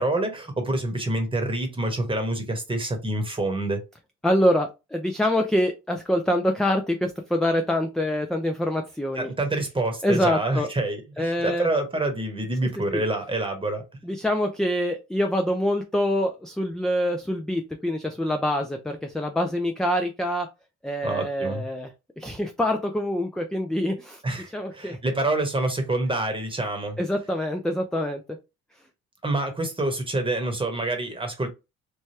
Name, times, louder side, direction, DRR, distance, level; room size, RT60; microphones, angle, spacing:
voice 1, 0.0-3.8 9.1-13.9 21.0-21.6 24.2-27.0 29.2-31.5, right 2 dB, 15° right, 1.0 m, -27 dB
voice 2, 4.2-9.3 10.0-10.7 11.2-11.7 12.9-13.0 14.0-20.5 20.8-21.9 22.2-24.2 24.5-25.0 27.0-28.2, left 1 dB, ahead, 0.3 m, -25 dB
3.2 x 2.2 x 2.7 m
cardioid pair, 90°, 30 cm